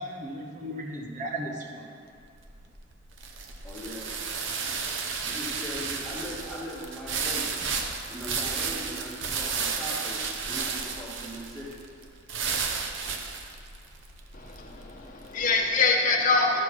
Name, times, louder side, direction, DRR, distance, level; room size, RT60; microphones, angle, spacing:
voice 1, 0.0-2.0, right 1 dB, 40° right, 0 dB, 1.0 m, -36 dB
sound 1, 2.2-15.5, right 5 dB, 70° right, 0.7 m, -33 dB
voice 2, 3.6-4.2 5.2-7.6 8.1-11.7, equal, ahead, -8 dB, 1.8 m, -39 dB
voice 3, 14.3-16.6, left 3 dB, 40° left, 0 dB, 1.0 m, -25 dB
12.5 x 4.5 x 6.1 m, 2.2 s
head